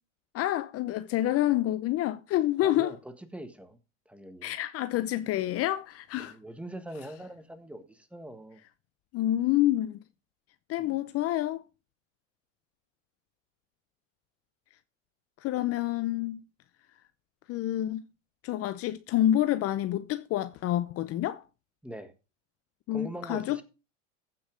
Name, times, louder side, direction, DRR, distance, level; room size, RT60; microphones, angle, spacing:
voice 1, 0.3-3.0 4.4-6.3 9.1-10.0 10.7-11.6 15.4-16.4 17.5-18.0 18.4-21.4 22.9-23.6, left 13 dB, 40° left, 0.8 m, -28 dB
voice 2, 2.6-3.8 4.0-4.5 6.2-8.6 10.8-11.0 21.8-22.1 22.9-23.6, right 1 dB, 5° right, 1.5 m, -42 dB
15.0 x 5.8 x 5.1 m
hypercardioid pair, 110°, 38 cm